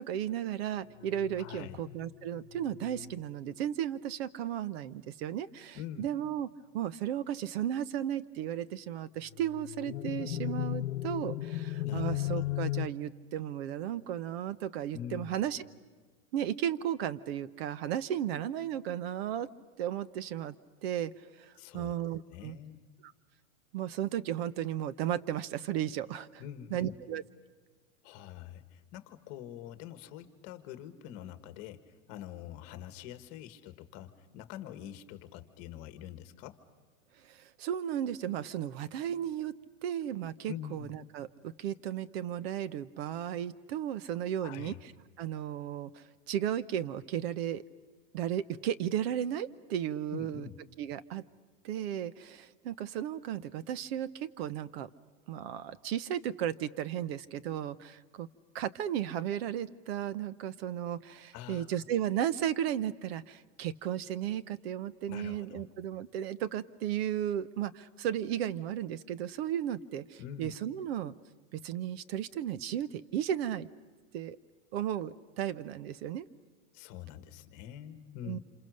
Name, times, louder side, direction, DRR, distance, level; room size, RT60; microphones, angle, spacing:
voice 1, 0.0-6.5 6.7-15.6 16.3-19.5 19.8-20.6 20.8-21.1 21.4-22.6 23.7-26.4 26.7-27.2 37.2-39.5 39.8-44.7 45.2-47.6 48.1-50.5 50.8-51.2 51.6-54.9 55.3-58.3 58.5-71.1 71.5-73.7 74.1-74.4 74.7-76.3 78.2-78.4, right 10 dB, 50° right, 16 dB, 0.9 m, -34 dB
sound 1, 1.0-3.3 9.3-12.9, left 15 dB, 85° left, 0.9 m, -36 dB
voice 2, 1.4-1.9 5.7-6.1 11.8-12.5 14.9-15.4 21.6-21.9 22.3-22.8 26.4-27.0 28.0-36.6 40.5-41.0 44.4-44.8 50.1-50.6 61.3-61.8 65.1-65.6 70.2-70.5 76.7-78.4, left 11 dB, 35° left, 10 dB, 1.6 m, -45 dB
27.5 x 27.5 x 6.5 m, 1.4 s
supercardioid pair, 145°, 40 cm